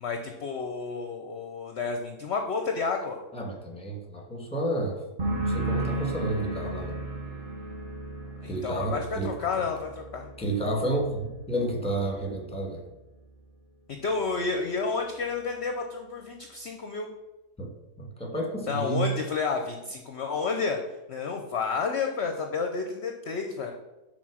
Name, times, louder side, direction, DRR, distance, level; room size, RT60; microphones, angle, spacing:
voice 1, 0.0-3.2 8.4-10.3 13.9-17.1 18.7-20.8 21.1-23.7, left 4 dB, 55° left, 4 dB, 0.8 m, -30 dB
voice 2, 3.3-5.0 5.4-7.0 8.5-9.3 10.4-12.8 17.6-17.7 18.0-19.1, right 1 dB, 5° left, 0 dB, 1.2 m, -30 dB
sound 1, 5.2-12.6 12.9-13.5, right 2 dB, 35° right, 1.1 m, -35 dB
6.0 x 4.3 x 6.1 m, 1.0 s
omnidirectional pair, 1.7 m